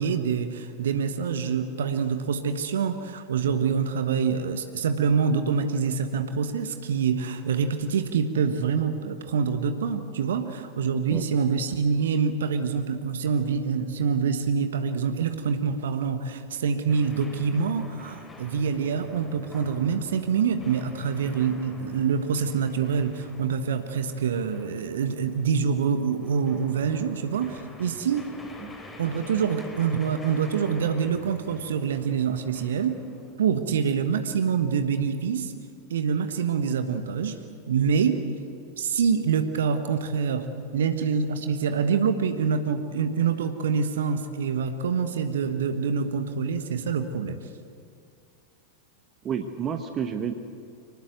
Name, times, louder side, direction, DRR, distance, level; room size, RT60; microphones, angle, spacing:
voice 1, 0.0-28.3 29.0-33.0 33.4-35.5 35.9-37.3 37.7-38.2 38.8-40.5 40.7-47.4, right 6 dB, 60° right, 8 dB, 1.3 m, -26 dB
sound 1, 16.9-33.3, left 1 dB, 15° left, 3.6 m, -47 dB
voice 2, 49.2-50.4, right 7 dB, 25° right, 7 dB, 1.2 m, -30 dB
24.5 x 19.5 x 8.1 m, 2.4 s
figure-of-eight pair, 90°, 0 cm